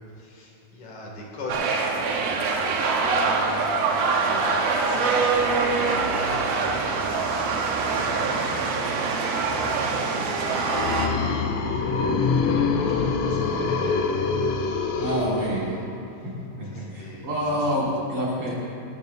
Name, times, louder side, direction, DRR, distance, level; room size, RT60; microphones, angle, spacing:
voice 1, 0.0-1.7 2.0-7.1 7.8-8.7 9.0-14.1 14.4-14.7 15.0-15.2 16.2-16.3 16.7-17.7, left 1 dB, 65° left, -2 dB, 3.8 m, -42 dB
sound 1, 1.5-11.1, right 4 dB, 65° right, 2.0 m, -24 dB
sound 2, 10.1-16.0, left 4 dB, 90° left, 1.2 m, -25 dB
voice 2, 15.0-15.8 16.6-18.5, equal, 50° right, -5 dB, 2.6 m, -27 dB
19.5 x 13.5 x 2.7 m, 2.7 s
omnidirectional pair, 3.6 m